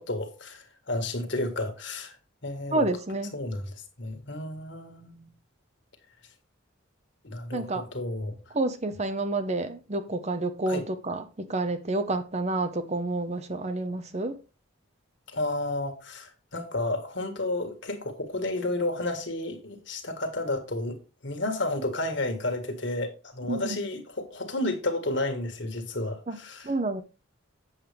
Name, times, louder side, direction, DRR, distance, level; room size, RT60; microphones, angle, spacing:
voice 1, 0.0-2.2 2.4-2.9 3.3-5.3 7.2-8.3 10.7-10.8 15.3-26.7, left 2 dB, 55° left, 1.7 m, -32 dB
voice 2, 2.7-3.3 7.5-7.8 8.5-14.4 23.5-23.8 26.3-26.4 26.6-27.0, right 2 dB, 35° right, 0.7 m, -29 dB
8.1 x 7.4 x 3.4 m
head